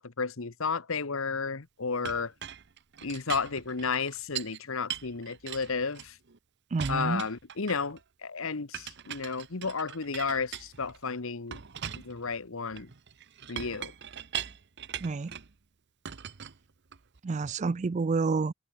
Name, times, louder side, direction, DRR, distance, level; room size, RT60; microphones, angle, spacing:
voice 1, 0.0-2.3 3.0-6.2 6.9-11.6 12.0-12.9 13.5-13.9, left 5 dB, 60° left, 1.1 m, -32 dB
Chink clink, 2.0-4.6 4.9-6.4 6.8-8.0 8.7-11.0 11.5-15.5 16.0-17.2, right 9 dB, 50° right, 0.9 m, -41 dB
voice 2, 6.7-7.2 15.0-15.3 17.2-18.5, right 4 dB, 30° right, 0.3 m, -28 dB
head